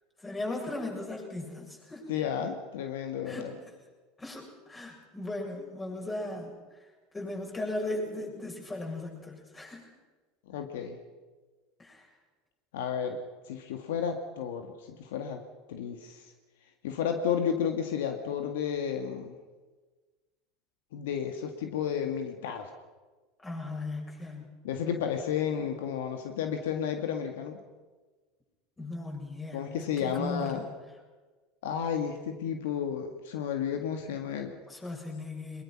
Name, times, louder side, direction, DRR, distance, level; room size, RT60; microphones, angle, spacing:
voice 1, 0.2-2.1 3.3-3.6 4.2-6.8 7.1-9.9 11.8-12.1 23.4-24.5 28.8-30.7 34.7-35.6, left 2 dB, 20° left, 1 dB, 7.2 m, -37 dB
voice 2, 2.1-3.5 10.5-11.0 12.7-15.4 15.7-16.3 16.8-19.4 20.9-22.7 24.6-27.6 29.5-30.6 31.6-34.5, left 8 dB, 80° left, 5 dB, 1.8 m, -32 dB
22.5 x 21.5 x 6.1 m, 1.3 s
hypercardioid pair, 90°, 0 cm